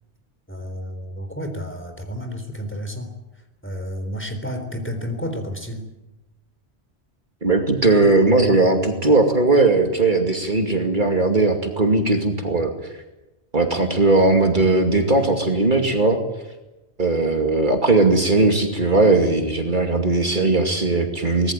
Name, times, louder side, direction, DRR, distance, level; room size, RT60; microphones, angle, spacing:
voice 1, 0.5-3.1 3.6-5.8, equal, 10° left, 5 dB, 3.8 m, -31 dB
voice 2, 7.4-12.9 13.5-16.2 17.0-21.5, right 2 dB, 45° right, 4 dB, 2.6 m, -18 dB
24.5 x 19.0 x 9.0 m, 1.0 s
omnidirectional pair, 1.1 m